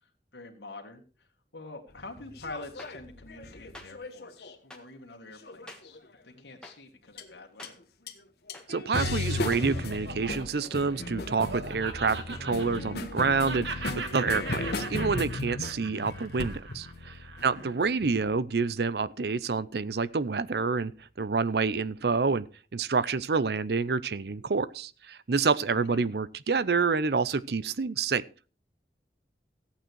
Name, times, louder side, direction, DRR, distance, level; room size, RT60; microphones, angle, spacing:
voice 1, 0.0-1.3 1.5-7.8 17.4-17.7 25.9-26.0, left 2 dB, 90° left, 1.9 m, -46 dB
sound 1, 2.0-4.5 5.5-6.0 7.2-7.3 7.6-7.7 8.1-8.2 8.5-18.2, left 2 dB, 65° left, 1.4 m, -36 dB
sound 2, 2.8-2.9 3.7-3.9 4.7-4.8 5.7-5.8 6.6-6.7 7.6-7.7 8.5-8.7 9.5-9.7, left 1 dB, 5° left, 1.6 m, -45 dB
voice 2, 8.7-20.9 21.2-22.5 22.7-28.2, right 4 dB, 65° right, 0.6 m, -28 dB
Laughter, 9.1-13.2 13.4-17.9, right 4 dB, 85° right, 1.7 m, -40 dB
14.5 x 9.0 x 4.6 m
head